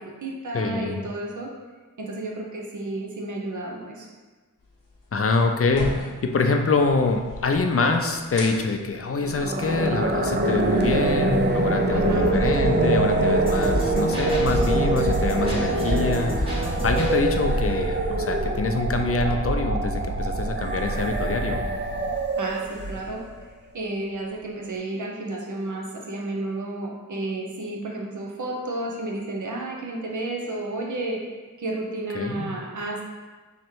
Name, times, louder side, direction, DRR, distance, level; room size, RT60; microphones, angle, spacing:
voice 1, 0.0-1.5 2.0-4.1 11.9-12.3 22.4-23.2 23.7-31.2 31.6-33.0, right 2 dB, 65° right, -1 dB, 0.8 m, -32 dB
voice 2, 0.5-1.1 5.1-21.6 32.2-32.5, left 3 dB, 45° left, 4 dB, 0.5 m, -25 dB
sound 1, 4.6-16.2, left 2 dB, 80° left, 0.8 m, -43 dB
sound 2, 9.2-23.3, right 2 dB, 35° right, 0.4 m, -24 dB
sound 3, 13.4-17.3, left 1 dB, 15° right, 1.3 m, -29 dB
3.6 x 3.1 x 4.5 m, 1.3 s
wide cardioid pair, 80°, 33 cm